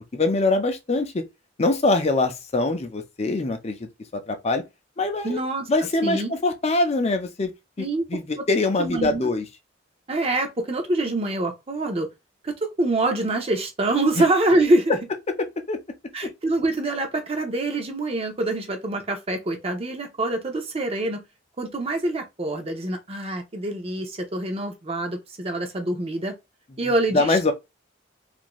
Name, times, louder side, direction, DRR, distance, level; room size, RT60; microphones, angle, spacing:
voice 1, 0.1-1.2 1.6-4.6 5.0-5.4 5.7-9.4 15.4-15.8 16.2-16.3 27.1-27.5, left 2 dB, 35° left, 0.5 m, -24 dB
voice 2, 5.2-5.7 6.0-6.3 7.8-8.1 8.8-9.3 10.1-12.1 12.4-15.0 16.1-21.2 21.6-26.3 26.8-27.5, right 2 dB, 30° right, 0.6 m, -25 dB
2.6 x 2.5 x 3.0 m
head